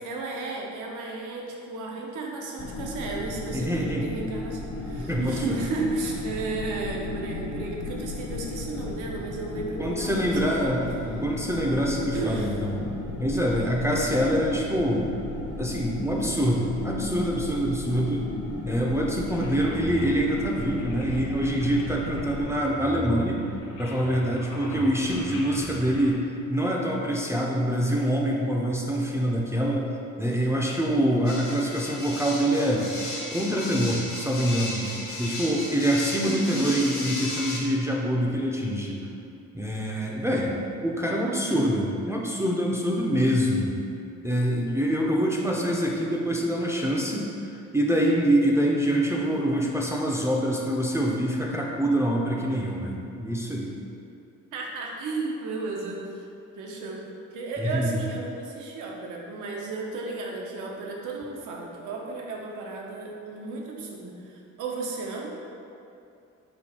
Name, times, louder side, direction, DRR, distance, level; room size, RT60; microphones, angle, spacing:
voice 1, 0.0-10.7 12.1-12.5 13.9-14.1 36.2-36.8 41.2-41.7 54.5-56.2 56.6-57.0 57.3-65.3, right 3 dB, 85° right, -1 dB, 0.7 m, -34 dB
sound 1, 2.6-22.4, left 2 dB, 50° left, 0.8 m, -35 dB
voice 2, 3.5-4.1 5.1-5.6 9.8-12.8 13.2-15.1 15.6-18.3 18.6-23.4 23.8-26.2 26.5-29.9 30.2-32.9 33.3-34.9 35.2-39.0 39.5-43.7 44.2-47.3 47.7-53.7 57.6-57.9, equal, 10° right, -3 dB, 0.4 m, -25 dB
sound 2, 19.3-26.1, right 1 dB, 85° left, 0.7 m, -40 dB
sound 3, 31.3-37.6, left 2 dB, 70° left, 1.3 m, -35 dB
4.3 x 2.6 x 4.2 m, 2.6 s
cardioid pair, 90°, 30 cm